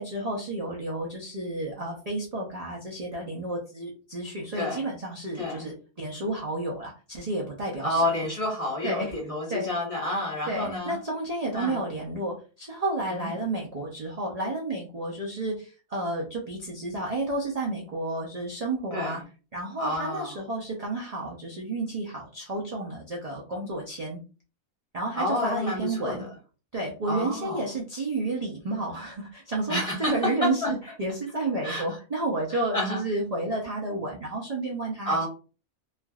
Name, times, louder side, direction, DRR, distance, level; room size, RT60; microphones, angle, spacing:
voice 1, 0.0-8.1 8.8-9.1 9.5-9.7 10.5-19.2 19.5-24.2 24.9-26.3 26.7-35.3, right 2 dB, 55° right, -2 dB, 0.4 m, -31 dB
voice 2, 7.8-11.0 11.5-11.8 13.1-13.3 18.9-19.2 19.8-20.3 25.1-26.3 27.1-27.6 29.7-30.7 31.6-31.8 32.7-33.0 35.0-35.3, left 1 dB, 25° left, -3 dB, 0.9 m, -29 dB
3.3 x 2.5 x 2.3 m, 0.35 s
omnidirectional pair, 1.6 m